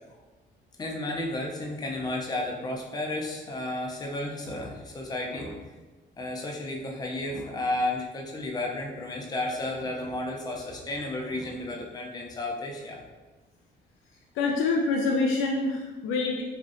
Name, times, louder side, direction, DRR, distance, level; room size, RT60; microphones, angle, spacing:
voice 1, 0.8-5.6 6.2-13.0, left 1 dB, 20° left, -1 dB, 0.5 m, -32 dB
voice 2, 14.3-16.4, left 3 dB, 90° left, 0 dB, 0.4 m, -26 dB
3.4 x 2.5 x 2.5 m, 1.2 s
cardioid pair, 90°, 20 cm